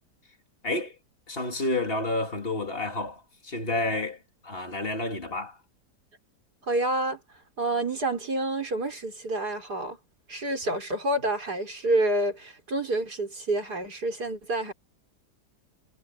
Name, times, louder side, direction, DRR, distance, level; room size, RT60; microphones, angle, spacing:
voice 1, 0.6-1.0 1.3-4.2 4.4-5.6, left 2 dB, 30° left, 2.9 m, -30 dB
voice 2, 6.6-7.2 7.6-10.0 10.3-14.7, right 2 dB, 65° right, 5.8 m, -28 dB
omnidirectional pair, 1.8 m